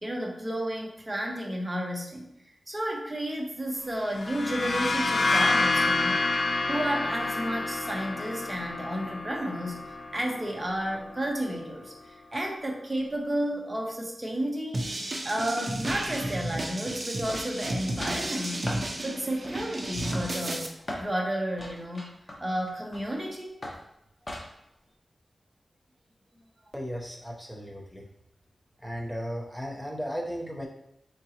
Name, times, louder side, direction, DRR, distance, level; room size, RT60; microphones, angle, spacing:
voice 1, 0.0-2.3 2.7-6.3 6.7-9.8 10.1-14.9 15.2-18.6 19.0-22.1 22.4-23.5, equal, 20° right, 0 dB, 0.9 m, -32 dB
sound 1, 4.0-11.6, left 3 dB, 55° left, 0.4 m, -29 dB
sound 2, 14.7-20.7, right 1 dB, 45° right, 0.6 m, -33 dB
sound 3, 17.3-17.7 18.0-18.2 18.7-18.9 19.4-19.7 20.0-21.1 21.6-23.2 23.6-23.8 24.3-24.7, left 1 dB, 35° left, 1.0 m, -39 dB
voice 2, 26.7-28.0 28.8-30.7, equal, ahead, -1 dB, 0.9 m, -35 dB
4.5 x 3.7 x 2.9 m, 0.77 s
wide cardioid pair, 75°, 0 cm